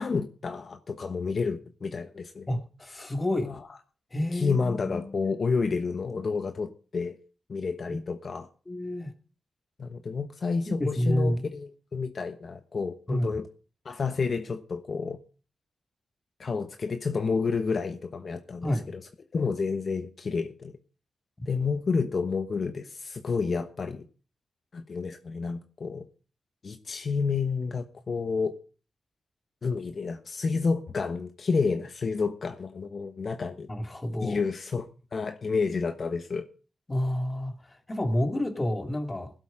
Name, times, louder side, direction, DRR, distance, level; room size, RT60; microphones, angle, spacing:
voice 1, 0.0-2.6 3.4-3.6 4.3-7.2 7.5-8.5 9.8-13.5 13.8-15.2 16.4-19.0 19.3-20.7 21.5-24.0 24.7-26.1 26.6-28.5 29.6-33.7 34.2-34.9 35.1-36.5, left 4 dB, 55° left, 1.2 m, -30 dB
voice 2, 2.5-3.5 4.1-5.3 7.9-8.0 8.7-9.1 10.8-11.4 13.1-13.3 18.6-18.9 33.7-34.4 36.9-39.3, left 1 dB, 25° left, 2.4 m, -29 dB
17.0 x 8.0 x 5.0 m
cardioid pair, 70°, 0 cm